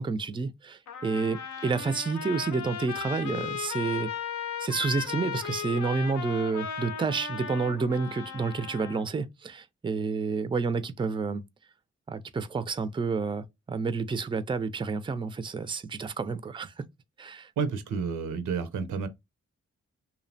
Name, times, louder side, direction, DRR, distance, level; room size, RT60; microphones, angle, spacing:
voice 1, 0.0-4.1 4.6-11.4 12.1-16.9 17.2-17.5, right 4 dB, 15° right, 0.4 m, -30 dB
Trumpet, 0.9-9.0, left 7 dB, 70° left, 0.6 m, -36 dB
voice 2, 17.6-19.1, right 5 dB, 90° right, 0.5 m, -30 dB
2.7 x 2.0 x 2.6 m
supercardioid pair, 40°, 30 cm